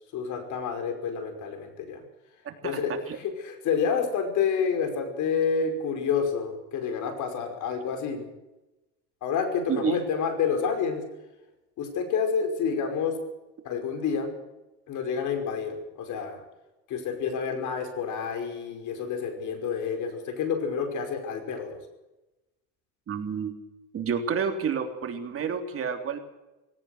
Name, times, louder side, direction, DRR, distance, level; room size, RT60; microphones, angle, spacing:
voice 1, 0.1-2.0 2.6-8.2 9.2-11.0 11.8-13.2 13.6-14.3 14.9-16.4 16.9-21.8, left 6 dB, 60° left, 7 dB, 5.4 m, -29 dB
voice 2, 2.4-2.8 3.1-3.2 9.7-10.0 23.1-23.5 23.9-26.2, right 6 dB, 40° right, 5 dB, 3.4 m, -29 dB
18.5 x 17.5 x 8.1 m, 1.0 s
cardioid pair, 120°, 33 cm